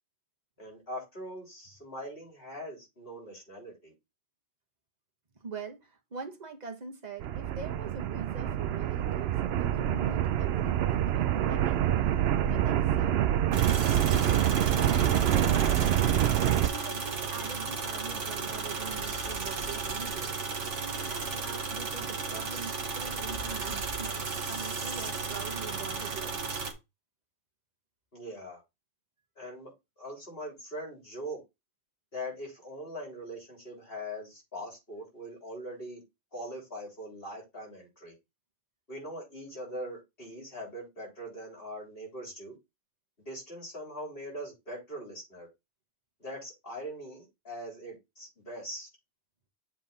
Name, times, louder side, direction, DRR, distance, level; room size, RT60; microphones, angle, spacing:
voice 1, 0.6-3.9 28.1-28.6 29.4-29.7 30.0-31.4 32.1-36.0 36.3-38.2 38.9-42.6 43.2-45.5 46.2-48.9, equal, 55° left, 3.7 m, -41 dB
voice 2, 5.4-13.5 16.6-20.4 20.7-26.4, right 4 dB, 40° right, 1.3 m, -43 dB
sound 1, 7.2-16.7, right 11 dB, 65° right, 0.7 m, -26 dB
sound 2, 13.5-26.7, right 4 dB, 90° right, 1.6 m, -34 dB
7.6 x 3.5 x 4.1 m
omnidirectional pair, 1.2 m